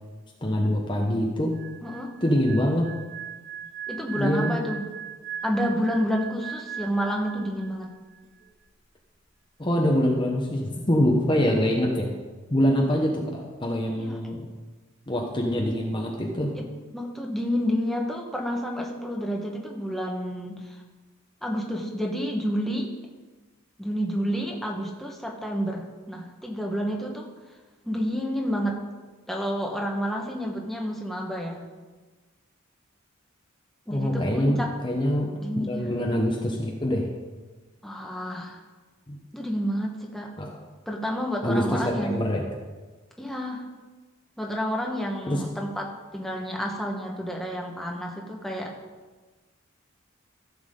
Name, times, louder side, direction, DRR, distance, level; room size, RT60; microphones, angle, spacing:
voice 1, 0.4-1.6 2.2-2.9 4.1-4.6 9.6-12.1 12.5-14.5 15.1-16.6 33.9-37.1 39.1-39.2 40.4-40.5 41.4-42.4 45.3-45.4, equal, 25° left, 0 dB, 1.0 m, -25 dB
sound 1, 1.5-8.4, right 8 dB, 85° right, 2.2 m, -39 dB
voice 2, 1.8-2.1 3.9-4.8 5.4-7.9 14.0-14.2 16.5-16.7 16.9-20.8 21.4-22.9 23.8-27.3 27.8-28.8 29.3-31.6 33.9-34.7 35.4-35.9 37.8-38.6 39.3-40.3 40.9-42.2 43.2-43.6 44.4-48.7, equal, ahead, -1 dB, 1.3 m, -29 dB
15.0 x 7.3 x 3.8 m, 1.3 s
head